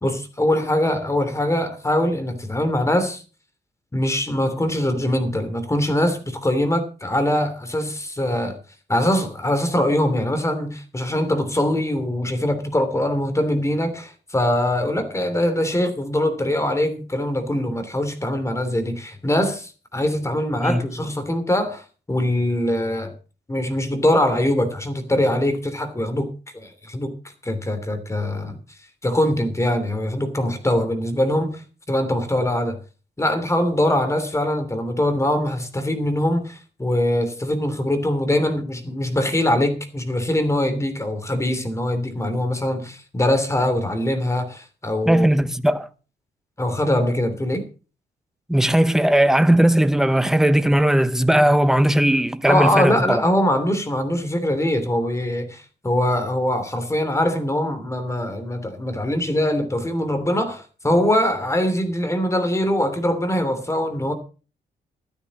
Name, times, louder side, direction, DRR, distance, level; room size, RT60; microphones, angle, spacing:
voice 1, 0.0-3.2 3.9-8.6 8.9-23.1 23.5-26.3 26.5-27.1 27.4-28.6 29.0-31.6 31.9-32.8 33.2-45.3 46.6-47.6 52.5-64.1, left 1 dB, 15° left, 3.0 m, -22 dB
voice 2, 45.1-45.9 48.5-53.2, right 1 dB, 5° right, 1.0 m, -18 dB
13.5 x 12.5 x 4.2 m
cardioid pair, 115°, 18 cm